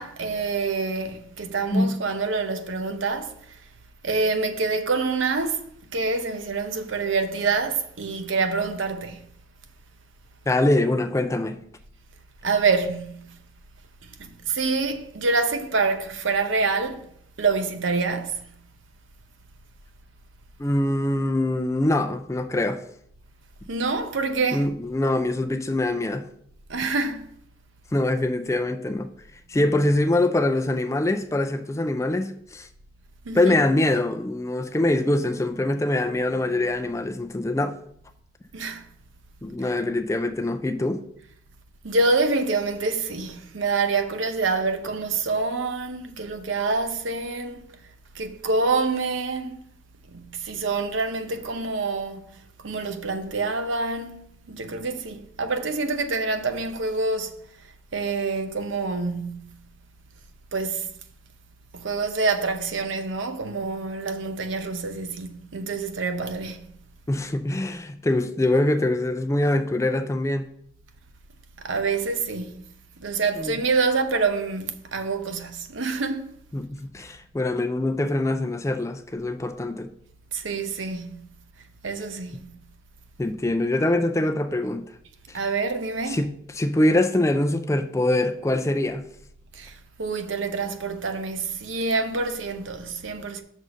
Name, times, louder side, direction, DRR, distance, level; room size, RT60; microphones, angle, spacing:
voice 1, 0.0-3.6 4.0-5.6 5.9-9.2 12.4-13.4 14.0-17.1 17.4-18.5 23.7-24.7 26.7-27.3 33.2-33.6 38.5-38.9 39.6-39.7 41.8-47.6 48.1-49.6 50.1-52.2 52.6-57.3 57.9-59.6 60.5-60.9 61.7-66.7 71.6-72.6 73.0-76.3 80.3-81.3 81.8-82.5 85.3-86.3 89.5-93.4, right 4 dB, 90° right, 0.7 m, -26 dB
voice 2, 10.5-11.6 20.6-22.8 24.5-26.3 27.9-29.1 29.5-32.7 33.3-37.7 39.4-41.0 67.1-70.5 73.4-73.6 76.5-79.9 83.2-84.8 85.3-85.4 86.1-86.3 86.5-89.1, left 1 dB, 15° left, 0.4 m, -24 dB
6.3 x 4.0 x 6.3 m
head